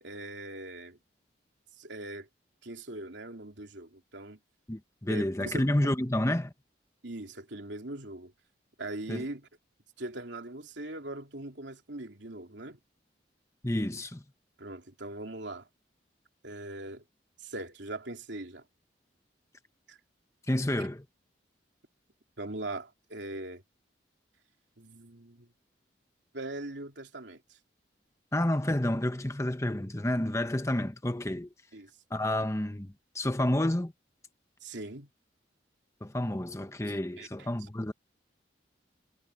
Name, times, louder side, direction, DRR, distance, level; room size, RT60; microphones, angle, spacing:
voice 1, 0.0-1.0 1.8-2.3 2.6-4.4 5.1-5.9 7.0-8.3 8.8-9.5 10.0-12.8 14.6-15.7 16.4-17.0 17.4-18.6 19.9-20.0 22.4-23.6 24.8-25.5 26.3-27.4 31.7-31.9 34.6-35.1 36.9-37.5, right 2 dB, 75° right, 3.0 m, -41 dB
voice 2, 4.7-6.5 9.1-9.2 13.6-14.2 20.5-21.0 28.3-31.5 32.1-33.9 36.0-37.9, left 1 dB, 15° left, 1.0 m, -30 dB
head